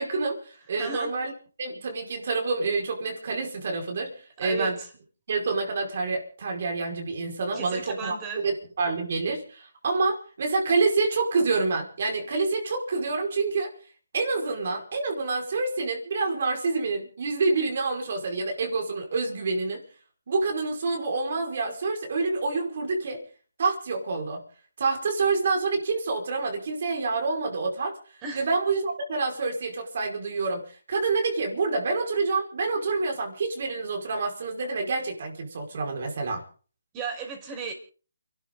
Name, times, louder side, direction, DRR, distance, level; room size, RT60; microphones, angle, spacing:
voice 1, 0.0-1.3 1.6-4.8 5.3-13.7 14.1-19.8 20.3-23.2 23.6-24.4 24.8-28.0 28.3-36.4, right 3 dB, 50° right, 2 dB, 5.2 m, -27 dB
voice 2, 0.8-1.1 4.4-4.9 7.5-8.4 28.2-28.5 36.9-37.7, right 5 dB, 15° right, 3 dB, 5.6 m, -35 dB
29.0 x 12.5 x 3.9 m, 0.40 s
hypercardioid pair, 165°, 0 cm